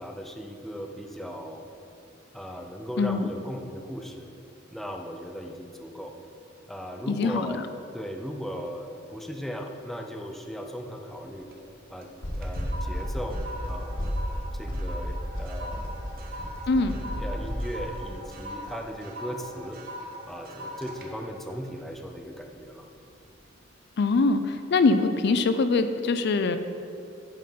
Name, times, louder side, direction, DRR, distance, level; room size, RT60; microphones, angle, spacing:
voice 1, 0.0-1.7 2.3-4.3 4.7-6.2 6.7-7.7 7.9-11.5 11.9-12.1 12.3-14.2 14.5-16.0 16.9-19.8 20.3-22.9, equal, ahead, 3 dB, 0.5 m, -37 dB
voice 2, 7.1-7.6 16.7-17.0 24.0-26.6, left 3 dB, 60° left, 10 dB, 0.4 m, -23 dB
sound 1, 11.2-11.7 12.0-22.6 23.0-23.3, equal, 50° right, 1.0 m, -42 dB
sound 2, 12.2-17.5, equal, 85° left, 1.5 m, -32 dB
8.9 x 5.4 x 5.5 m, 2.6 s
head